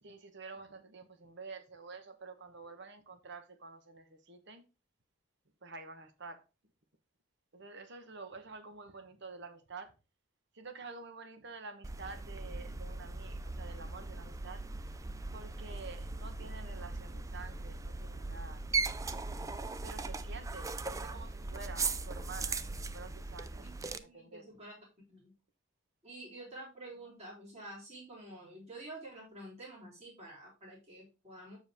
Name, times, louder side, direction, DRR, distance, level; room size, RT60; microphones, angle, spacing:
voice 1, 0.0-4.7 5.6-6.4 7.5-9.9 10.5-14.9 15.3-18.6 19.8-23.7 24.0-24.5, right 4 dB, 60° right, 1.2 m, -49 dB
sound 1, 11.8-24.0, right 3 dB, 15° right, 0.4 m, -39 dB
voice 2, 23.6-24.7 25.1-25.3 26.0-31.6, right 1 dB, 35° right, 4.0 m, -49 dB
7.4 x 6.2 x 3.5 m
head